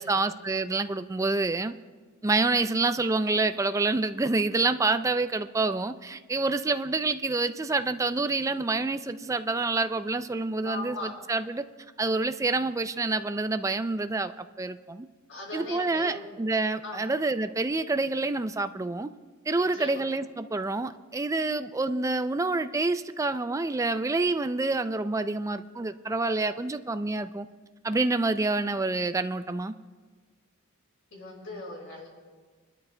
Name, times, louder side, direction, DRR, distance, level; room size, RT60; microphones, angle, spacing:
voice 1, 0.0-1.7 2.2-11.6 12.0-15.1 15.5-19.1 19.5-27.5 27.8-29.7, right 3 dB, 15° right, 10 dB, 0.4 m, -27 dB
voice 2, 10.6-11.1 15.3-16.3 16.8-17.1 19.6-20.0 31.1-32.1, left 1 dB, 65° left, -2 dB, 4.2 m, -39 dB
24.5 x 12.5 x 2.2 m, 1.4 s
head